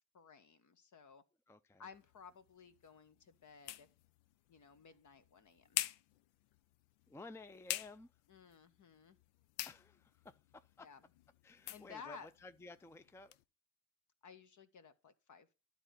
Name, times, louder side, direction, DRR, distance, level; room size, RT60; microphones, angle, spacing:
voice 1, 0.1-1.2 1.8-3.9 4.5-5.8 8.3-9.2 10.8-11.0 11.7-12.3 14.2-15.5, left 6 dB, 50° left, 1.3 m, -56 dB
voice 2, 1.5-1.9 7.1-8.1 9.6-10.9 11.4-13.4, left 2 dB, 5° left, 0.5 m, -54 dB
sound 1, 1.9-13.4, left 14 dB, 75° left, 0.6 m, -48 dB
12.0 x 4.1 x 6.5 m
hypercardioid pair, 50°, 39 cm